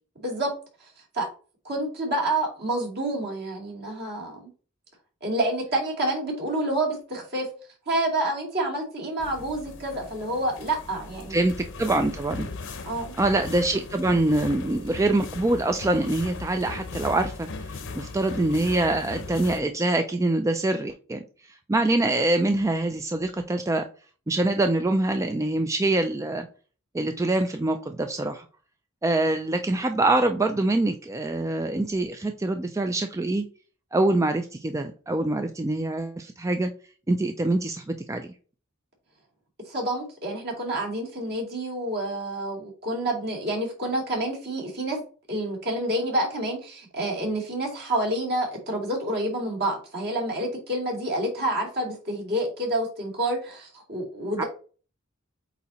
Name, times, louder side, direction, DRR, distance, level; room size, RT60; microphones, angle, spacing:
voice 1, 1.6-4.5 5.2-7.5 7.9-11.4 12.9-13.2 39.7-45.0 45.3-54.4, right 1 dB, 55° right, 0 dB, 2.6 m, -28 dB
sound 1, 9.2-19.6, left 3 dB, 65° left, 0.8 m, -38 dB
voice 2, 11.3-12.5 13.2-21.2 21.5-23.9 24.3-26.5 26.9-28.5 29.0-33.5 33.9-36.7 37.1-38.3 54.4-54.5, right 2 dB, 15° right, 7 dB, 0.4 m, -25 dB
8.1 x 2.8 x 4.1 m, 0.39 s
head